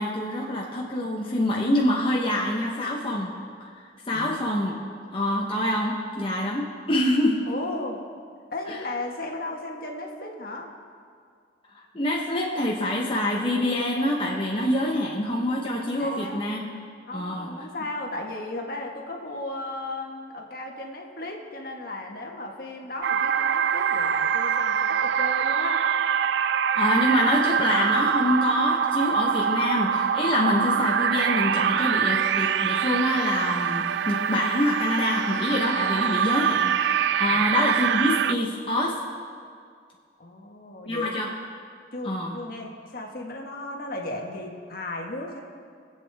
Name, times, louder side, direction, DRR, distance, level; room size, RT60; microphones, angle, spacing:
voice 1, 0.0-3.3 3.6-3.7 4.1-4.8 5.1-7.4 8.7-8.8 11.7-16.7 17.1-17.5 26.7-39.0 40.9-41.3 42.0-42.4, left 1 dB, 30° left, -4 dB, 1.0 m, -26 dB
voice 2, 7.5-8.0 8.5-10.7 16.0-16.5 17.1-25.8 37.3-37.5 40.2-41.4 41.9-45.4, left 2 dB, 50° left, 1 dB, 1.5 m, -35 dB
sound 1, 23.0-38.3, right 8 dB, 70° right, 0.3 m, -24 dB
23.0 x 8.5 x 3.5 m, 2.2 s
head